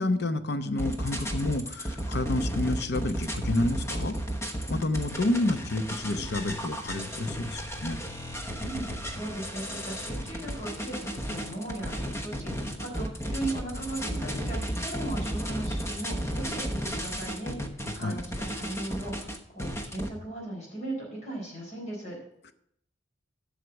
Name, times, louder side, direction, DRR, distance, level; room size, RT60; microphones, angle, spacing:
voice 1, 0.0-4.2 4.7-8.0 18.0-18.2, left 2 dB, 60° left, 10 dB, 0.8 m, -29 dB
sound 1, 0.8-20.1, equal, 15° left, 1.0 m, -33 dB
voice 2, 9.1-22.2, right 2 dB, 40° left, -2 dB, 4.1 m, -37 dB
7.9 x 6.6 x 8.0 m, 0.73 s
head